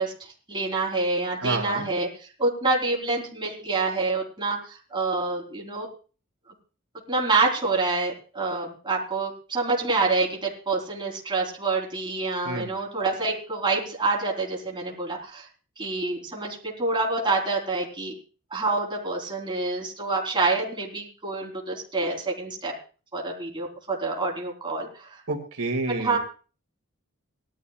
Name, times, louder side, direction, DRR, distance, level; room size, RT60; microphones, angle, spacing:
voice 1, 0.0-2.1 2.4-5.9 7.1-15.5 15.8-18.1 18.5-22.7 23.1-25.2 26.0-26.2, right 3 dB, 20° right, -1 dB, 3.8 m, -27 dB
voice 2, 1.4-1.8 12.4-12.7 25.3-26.2, right 3 dB, 80° right, 2 dB, 2.4 m, -29 dB
19.5 x 12.5 x 2.4 m, 0.37 s
head